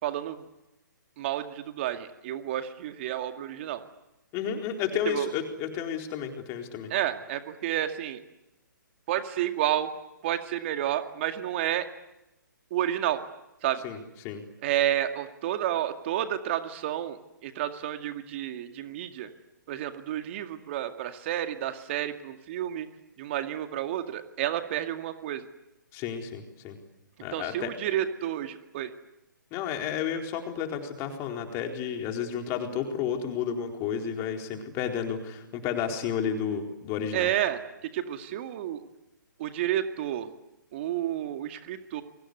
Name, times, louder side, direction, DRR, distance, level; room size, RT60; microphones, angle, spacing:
voice 1, 0.0-0.4 1.2-3.8 5.1-5.3 6.9-8.2 9.1-9.9 10.2-11.9 12.7-13.2 13.6-13.8 14.6-19.3 19.7-22.9 23.2-25.5 27.3-28.9 37.1-37.6 37.9-38.9 39.4-40.3 40.7-42.0, right 12 dB, 35° right, 7 dB, 2.1 m, -30 dB
voice 2, 4.3-6.9 13.8-14.4 25.9-26.8 27.2-27.7 29.5-37.3, left 8 dB, 25° left, 3 dB, 4.2 m, -32 dB
29.5 x 24.0 x 8.1 m, 0.93 s
figure-of-eight pair, 135°, 11 cm